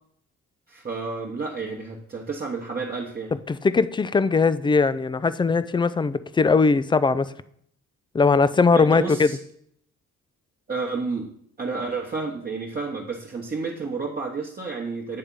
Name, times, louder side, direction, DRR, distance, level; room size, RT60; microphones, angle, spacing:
voice 1, 0.7-3.3 8.7-9.4 10.7-11.3 11.6-15.2, right 4 dB, 30° right, 1.0 m, -31 dB
voice 2, 3.5-7.3 8.1-9.3, left 4 dB, 15° left, 0.3 m, -20 dB
8.6 x 3.5 x 5.3 m
cardioid pair, 90°, 30 cm